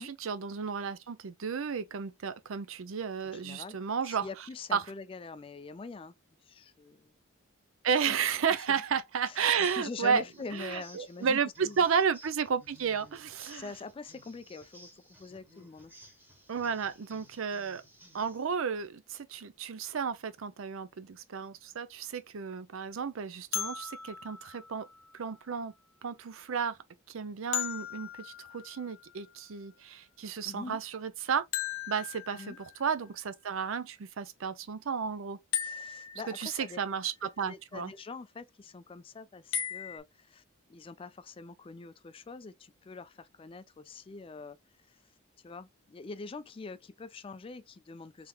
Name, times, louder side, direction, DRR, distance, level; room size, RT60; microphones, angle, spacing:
voice 1, 0.0-4.3 4.7-4.8 7.8-10.2 10.5-13.7 16.5-17.8 18.1-24.9 25.1-25.7 26.0-26.8 27.1-31.4 31.9-35.4 36.4-37.9, right 6 dB, 75° right, 0.5 m, -32 dB
voice 2, 3.3-3.8 4.0-6.1 6.4-7.1 8.1-8.2 9.3-9.4 9.8-11.8 13.5-14.9 15.2-15.9 30.4-30.8 32.3-32.6 35.6-36.8 37.2-40.4 40.7-44.6 44.9-45.0 45.4-48.3, left 4 dB, 25° left, 0.3 m, -44 dB
sound 1, 9.5-18.5, equal, 10° right, 1.1 m, -57 dB
sound 2, 23.5-25.5 27.5-29.3 31.5-32.9 35.5-36.8 39.5-40.0, left 10 dB, 75° left, 0.6 m, -38 dB
3.7 x 3.4 x 2.3 m
head